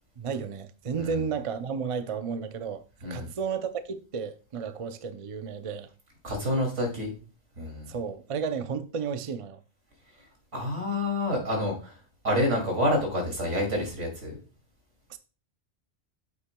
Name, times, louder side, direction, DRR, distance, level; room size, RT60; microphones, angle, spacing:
voice 1, 0.2-2.8 3.1-5.9 7.9-9.6 15.1-15.2, right 6 dB, 45° right, 0.4 m, -32 dB
voice 2, 6.2-7.1 7.6-7.9 10.5-12.0 12.2-14.4, left 1 dB, 70° right, 2.9 m, -28 dB
8.6 x 8.1 x 2.2 m
omnidirectional pair, 1.3 m